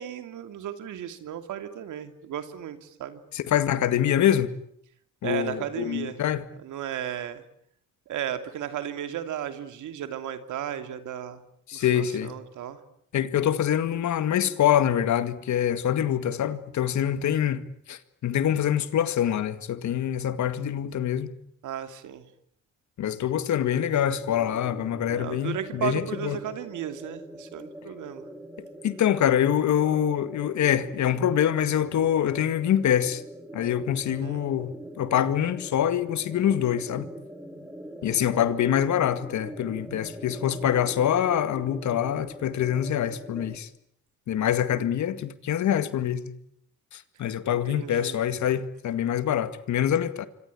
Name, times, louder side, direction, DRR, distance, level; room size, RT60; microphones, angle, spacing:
voice 1, 0.0-3.2 5.2-6.2 6.6-7.4 8.1-11.4 11.7-12.8 21.6-22.2 25.1-28.2 34.2-34.4 47.5-48.2, right 10 dB, 75° right, 2.8 m, -34 dB
voice 2, 3.3-4.6 5.2-6.4 11.7-12.3 13.1-17.6 17.9-21.3 23.0-26.4 28.8-33.2 33.5-37.1 38.0-43.7 44.3-46.3 46.9-50.3, left 10 dB, 70° left, 2.0 m, -25 dB
sound 1, 23.8-43.5, right 1 dB, 5° right, 3.4 m, -43 dB
26.5 x 25.0 x 8.6 m
cardioid pair, 90°, 30 cm